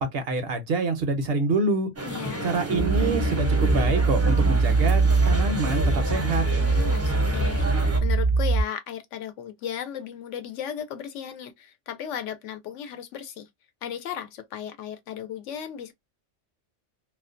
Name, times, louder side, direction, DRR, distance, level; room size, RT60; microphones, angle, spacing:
voice 1, 0.1-1.9 2.4-6.4, right 3 dB, 65° right, 0.7 m, -26 dB
voice 2, 2.0-2.5 6.5-13.5 13.8-15.9, left 9 dB, 80° left, 0.9 m, -36 dB
sound 1, 2.0-8.0, right 1 dB, 20° right, 0.4 m, -31 dB
sound 2, 2.7-8.6, right 3 dB, 35° left, 0.5 m, -22 dB
2.4 x 2.1 x 2.4 m
omnidirectional pair, 1.3 m